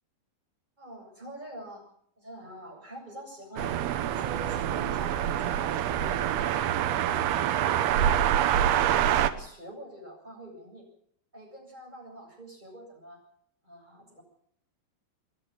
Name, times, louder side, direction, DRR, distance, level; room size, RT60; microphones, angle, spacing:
voice 1, 0.8-1.8 2.2-3.8 4.1-6.3 8.2-10.9 11.3-13.2 13.6-14.2, right 1 dB, 10° right, 0 dB, 7.6 m, -45 dB
sound 1, 3.6-9.3, right 10 dB, 75° right, 2.4 m, -26 dB
27.5 x 11.5 x 8.8 m, 0.67 s
omnidirectional pair, 5.6 m